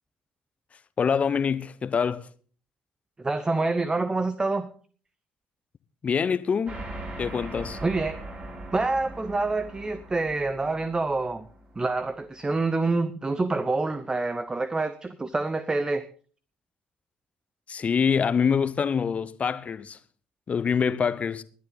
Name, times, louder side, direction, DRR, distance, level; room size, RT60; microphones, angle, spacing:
voice 1, 1.0-2.3 6.0-6.8 7.2-7.8 17.7-20.0 20.5-21.4, left 6 dB, 30° left, 1.0 m, -25 dB
voice 2, 3.2-4.7 7.8-8.2 8.7-11.5 11.8-16.1, right 3 dB, 15° right, 0.9 m, -27 dB
sound 1, 6.7-12.5, right 1 dB, 35° right, 5.6 m, -41 dB
20.0 x 11.5 x 4.1 m
figure-of-eight pair, 55°, 4 cm